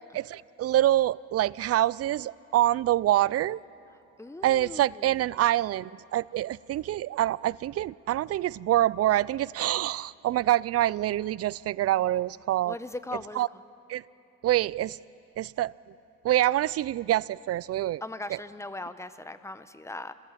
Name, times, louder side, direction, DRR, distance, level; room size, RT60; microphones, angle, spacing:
voice 1, 0.1-3.6 4.4-12.7 13.4-13.5 13.9-14.0 14.4-15.0 15.4-15.7 16.2-18.0 18.3-18.4, right 14 dB, 55° right, 0.4 m, -26 dB
voice 2, 4.2-5.1 12.6-13.5 18.0-20.1, left 2 dB, 10° left, 0.9 m, -39 dB
25.5 x 18.0 x 7.5 m
cardioid pair, 90°, 30 cm